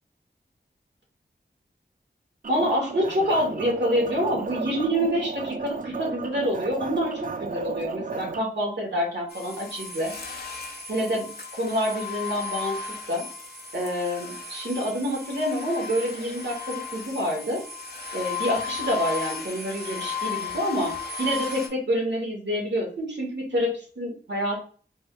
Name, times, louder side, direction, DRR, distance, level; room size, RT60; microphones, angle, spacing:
sound 1, 2.4-8.4, right 5 dB, 45° right, 0.4 m, -34 dB
voice 1, 2.5-10.1 10.9-13.2 13.7-17.6 18.1-24.6, equal, 70° right, -1 dB, 1.7 m, -27 dB
sound 2, 9.3-21.7, left 5 dB, 60° left, 1.1 m, -35 dB
4.2 x 3.6 x 2.3 m, 0.41 s
wide cardioid pair, 50°, 19 cm